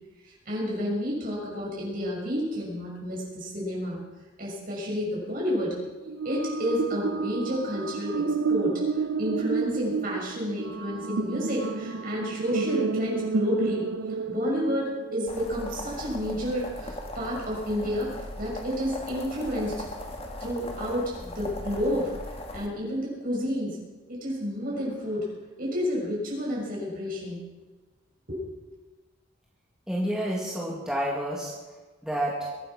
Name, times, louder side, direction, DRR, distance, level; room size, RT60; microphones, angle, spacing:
voice 1, 0.3-4.0 4.4-5.7 6.2-13.9 14.3-19.7 20.4-22.1 22.5-23.8 24.1-25.3 25.6-27.4 28.3-28.4, equal, 45° right, -4 dB, 6.6 m, -30 dB
sound 1, 6.1-15.4, right 4 dB, 85° right, 0.6 m, -30 dB
sound 2, 15.3-22.7, left 1 dB, 30° left, 1.8 m, -38 dB
voice 2, 29.9-31.6 32.0-32.4, equal, 5° right, -4 dB, 2.0 m, -29 dB
22.5 x 9.5 x 6.0 m, 1.2 s
head